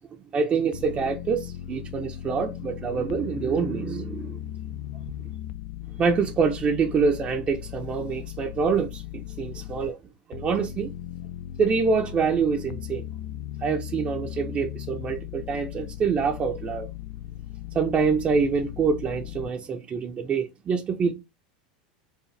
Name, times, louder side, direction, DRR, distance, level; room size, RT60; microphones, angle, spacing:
voice 1, 0.3-4.4 6.0-10.0 10.3-10.9 11.6-13.1 13.6-16.9 17.7-21.1, right 5 dB, 30° right, 0.7 m, -26 dB
sound 1, 0.7-9.9 10.3-19.5, left 12 dB, 65° left, 0.4 m, -37 dB
4.7 x 2.4 x 3.2 m
hypercardioid pair, 110°, 4 cm